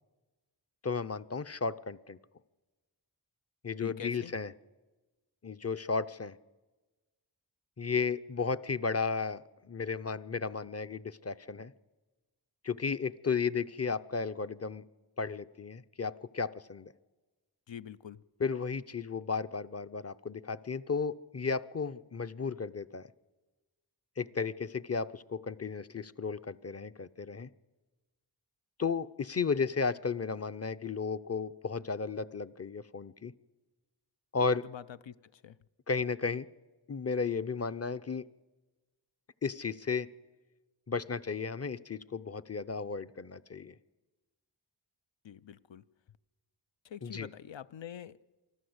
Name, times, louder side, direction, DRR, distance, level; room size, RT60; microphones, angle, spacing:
voice 1, 0.8-2.2 3.6-4.5 5.4-6.3 7.8-11.7 12.6-14.8 15.2-16.9 18.4-23.1 24.2-27.5 28.8-33.3 34.3-34.7 35.9-36.5 36.9-38.2 39.4-40.1 40.9-43.8 47.0-47.3, left 5 dB, 35° left, 13 dB, 0.6 m, -34 dB
voice 2, 3.8-4.3 17.7-18.2 34.6-35.6 45.2-45.8 46.8-48.2, left 9 dB, 80° left, 16 dB, 0.6 m, -45 dB
24.5 x 13.5 x 8.0 m, 1.2 s
wide cardioid pair, 40°, 44 cm